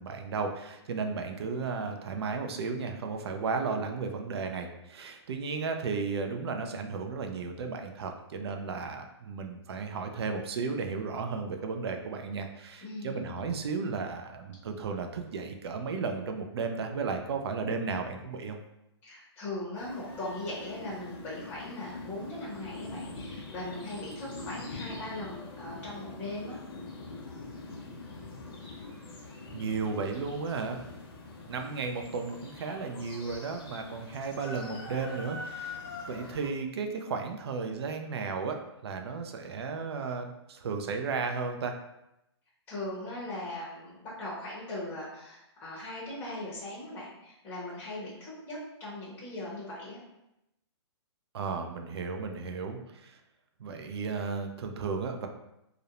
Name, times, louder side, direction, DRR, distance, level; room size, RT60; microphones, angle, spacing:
voice 1, 0.0-18.6 29.5-30.8 31.5-35.8 36.1-41.8 51.3-53.2 53.6-55.3, right 4 dB, 65° right, 4 dB, 0.4 m, -34 dB
voice 2, 12.8-13.2 19.0-26.6 42.7-50.0, left 1 dB, 10° left, -7 dB, 0.6 m, -39 dB
sound 1, 19.7-36.5, left 3 dB, 55° left, 0.6 m, -44 dB
2.4 x 2.0 x 2.8 m, 0.87 s
hypercardioid pair, 160°, 15 cm